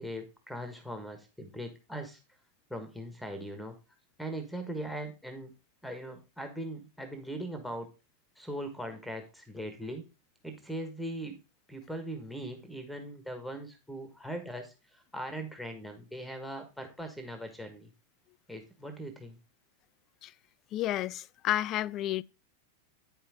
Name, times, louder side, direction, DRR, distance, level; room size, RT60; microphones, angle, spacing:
voice 1, 0.0-2.2 2.7-3.7 4.2-5.5 5.8-7.9 8.4-10.0 10.4-11.4 11.7-17.9 18.5-19.4, right 1 dB, ahead, 1.4 m, -40 dB
voice 2, 20.7-22.2, left 13 dB, 35° left, 0.3 m, -31 dB
9.0 x 5.7 x 3.6 m
figure-of-eight pair, 90°, 0 cm